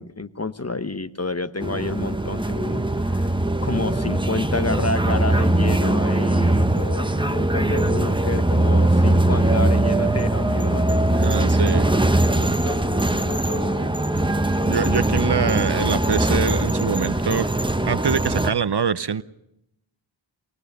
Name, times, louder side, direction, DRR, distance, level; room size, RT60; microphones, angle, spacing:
voice 1, 0.0-3.3 3.6-11.0 12.3-13.9 14.9-15.0, left 3 dB, 30° left, 11 dB, 1.0 m, -30 dB
sound 1, 1.6-18.5, right 1 dB, 10° right, 1.0 m, -21 dB
voice 2, 11.1-11.9 14.6-17.5 17.9-19.2, right 6 dB, 55° right, 15 dB, 0.7 m, -24 dB
23.5 x 19.5 x 6.7 m, 0.82 s
wide cardioid pair, 45°, 48 cm